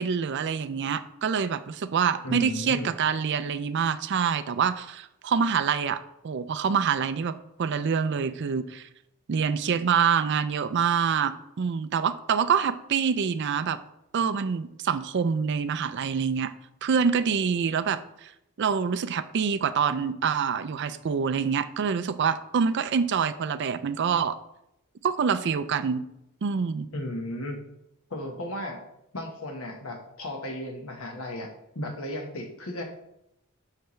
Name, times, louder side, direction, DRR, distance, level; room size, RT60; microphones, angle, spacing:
voice 1, 0.0-8.9 9.3-13.8 14.1-16.5 16.8-18.3 18.6-24.4 25.0-26.1 26.4-26.9, right 6 dB, 55° right, 13 dB, 0.4 m, -26 dB
voice 2, 2.2-2.9 26.9-27.6 28.1-28.8 29.1-31.5 31.7-32.8, left 1 dB, 75° left, 3 dB, 1.3 m, -34 dB
6.7 x 5.6 x 3.2 m, 0.81 s
head